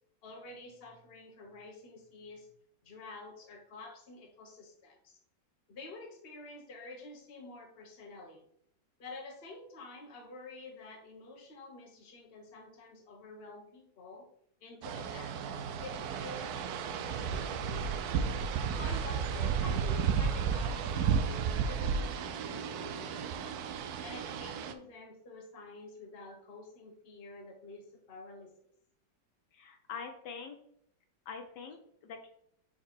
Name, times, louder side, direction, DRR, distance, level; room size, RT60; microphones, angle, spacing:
voice 1, 0.2-2.5 2.8-5.2 5.7-8.5 9.0-14.3 14.6-18.1 18.8-23.6 24.0-28.5, left 3 dB, 35° left, 2 dB, 1.2 m, -49 dB
sound 1, 14.8-24.7, right 6 dB, 70° right, 1.0 m, -33 dB
voice 2, 29.5-30.6 31.3-32.3, left 5 dB, 70° left, 5 dB, 1.3 m, -44 dB
4.7 x 4.3 x 5.8 m, 0.69 s
omnidirectional pair, 2.0 m